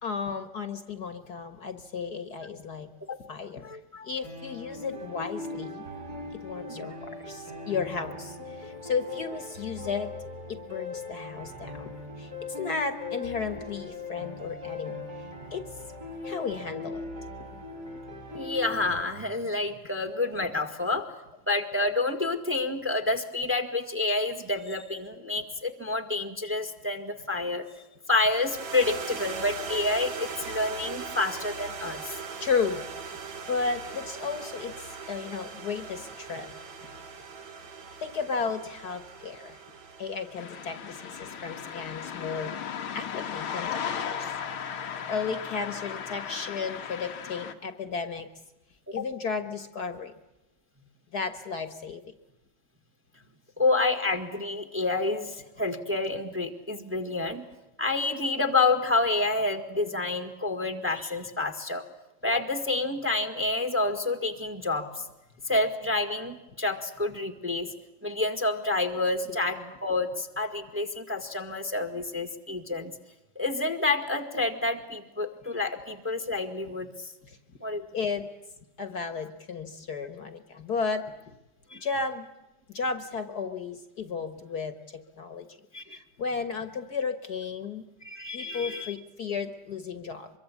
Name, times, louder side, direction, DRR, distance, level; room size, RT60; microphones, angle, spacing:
voice 1, 0.0-2.9 3.3-5.9 6.3-10.1 10.5-15.0 15.5-15.7 16.2-17.0 32.4-32.8 33.5-36.5 38.0-39.6 40.0-42.5 42.9-44.4 45.1-48.3 48.9-50.1 51.1-52.1 77.2-77.4 77.9-78.3 78.8-81.1 81.8-82.3 82.7-85.6 85.9-87.8 88.3-90.3, left 5 dB, 55° left, 10 dB, 1.8 m, -34 dB
voice 2, 3.6-4.1 6.7-6.9 18.3-21.1 21.5-27.6 28.1-32.1 48.9-49.0 53.6-57.4 57.8-61.8 62.2-65.0 65.4-67.7 68.0-72.9 73.3-77.1 77.6-77.8 81.7-81.8 85.7-86.0 88.0-88.9, left 2 dB, 5° right, 7 dB, 1.6 m, -29 dB
sound 1, 4.2-19.0, left 2 dB, 45° right, 7.9 m, -40 dB
sound 2, 28.2-42.7, right 5 dB, 70° right, 2.7 m, -40 dB
sound 3, 40.4-47.5, left 8 dB, 90° left, 2.3 m, -36 dB
25.0 x 23.0 x 8.6 m, 0.96 s
omnidirectional pair, 2.2 m